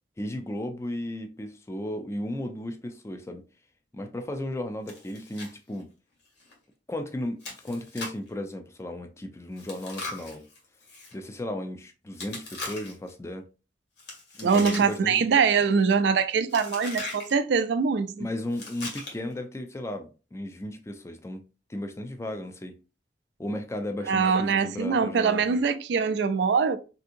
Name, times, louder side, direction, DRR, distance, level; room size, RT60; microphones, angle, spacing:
voice 1, 0.2-3.4 3.9-5.9 6.9-10.4 11.1-13.5 14.4-15.3 18.2-21.4 21.7-22.8 23.4-25.6, left 1 dB, 15° left, 0.4 m, -35 dB
Chewing mastication, 4.9-5.5 5.8-5.9 6.4-6.5 7.4-8.3 9.6-11.1 12.1-13.1 14.0-15.1 15.4-15.8 16.5-17.3 18.5-19.3, left 2 dB, 75° left, 1.5 m, -39 dB
voice 2, 14.4-18.3 24.1-26.8, right 5 dB, 75° right, 0.4 m, -23 dB
3.5 x 2.7 x 2.5 m
head